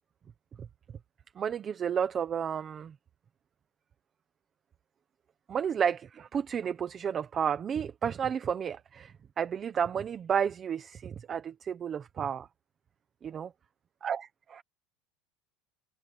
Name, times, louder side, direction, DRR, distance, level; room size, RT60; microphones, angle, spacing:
voice 1, 1.4-2.9 5.5-12.5 13.2-13.5 14.0-14.6, right 7 dB, 20° right, 0.9 m, -32 dB
open air
cardioid pair, 175°, 0 cm